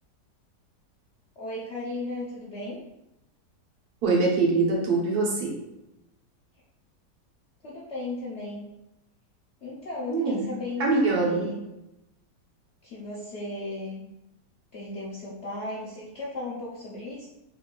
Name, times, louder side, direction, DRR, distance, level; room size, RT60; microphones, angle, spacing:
voice 1, 1.4-2.8 7.6-8.6 9.6-11.6 12.8-14.0 14.7-17.3, left 2 dB, 60° left, -6 dB, 0.7 m, -35 dB
voice 2, 4.0-5.6 10.1-10.4 10.8-11.5, right 3 dB, 65° right, -2 dB, 1.3 m, -23 dB
4.6 x 3.3 x 2.2 m, 0.90 s
omnidirectional pair, 1.8 m